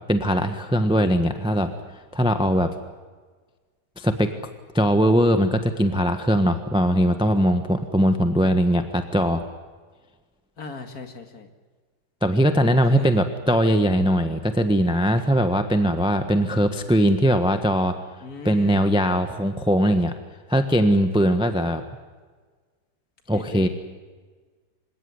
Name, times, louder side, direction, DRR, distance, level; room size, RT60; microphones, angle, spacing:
voice 1, 0.1-1.7 2.1-2.7 4.0-4.3 4.7-9.4 12.2-18.0 18.4-20.1 20.5-21.8 23.3-23.7, equal, 5° right, 8 dB, 1.2 m, -20 dB
voice 2, 10.6-11.5 12.6-13.2 18.2-18.8 23.3-23.7, left 4 dB, 55° left, 6 dB, 2.8 m, -37 dB
26.5 x 17.5 x 9.6 m, 1.4 s
omnidirectional pair, 1.9 m